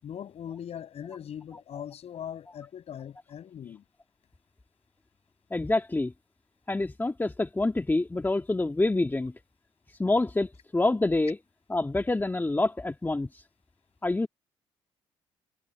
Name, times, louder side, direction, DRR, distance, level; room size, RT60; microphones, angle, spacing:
voice 1, 0.0-3.8, left 9 dB, 65° left, 5.9 m, -40 dB
voice 2, 5.5-6.1 6.7-9.3 9.9-11.4 11.7-13.4 14.0-14.3, left 2 dB, 15° left, 1.7 m, -27 dB
supercardioid pair, 65°, 12 cm